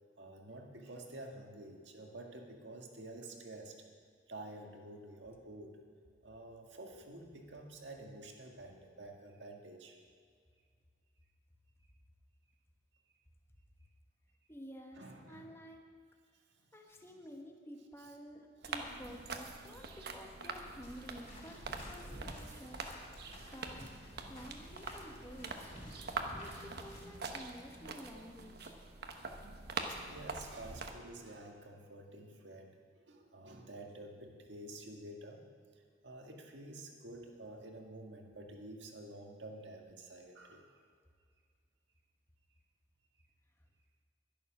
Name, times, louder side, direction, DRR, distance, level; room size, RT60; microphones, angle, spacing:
voice 1, 0.2-3.8 4.3-5.8 6.2-10.0 15.0-15.5 18.6-18.7 23.3-23.5 24.3-24.5 29.8-35.5 35.7-40.8, right 1 dB, 80° right, 2 dB, 1.7 m, -50 dB
voice 2, 14.5-15.9 16.7-23.2 23.5-23.9 24.3-25.5 26.3-28.8, equal, 15° left, 2 dB, 1.2 m, -52 dB
sound 1, 18.6-30.9, right 3 dB, 60° right, 1.0 m, -44 dB
sound 2, 20.8-27.0, left 1 dB, 35° left, 3.9 m, -52 dB
11.0 x 11.0 x 6.0 m, 2.1 s
head